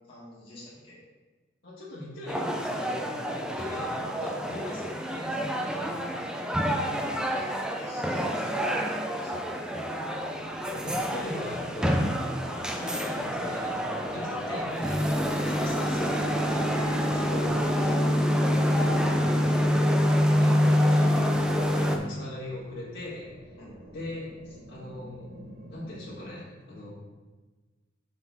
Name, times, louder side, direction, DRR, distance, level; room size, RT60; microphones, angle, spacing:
voice 1, 0.1-1.0 3.5-3.6 6.8-10.4 12.8-12.9 13.4-13.5 17.8-18.1 23.6-24.1, left 1 dB, 30° left, -9 dB, 2.3 m, -47 dB
voice 2, 1.6-6.0 6.8-7.1 10.6-12.0 12.5-17.6 18.7-19.5 20.4-21.2 21.8-23.6 23.9-24.3 24.7-25.3 25.7-26.9, left 1 dB, 60° left, -11 dB, 1.9 m, -40 dB
sound 1, 2.3-22.0, equal, 5° right, 0.5 m, -27 dB
sound 2, 10.3-26.3, right 1 dB, 50° right, 1.2 m, -48 dB
7.1 x 5.9 x 3.5 m, 1.3 s
head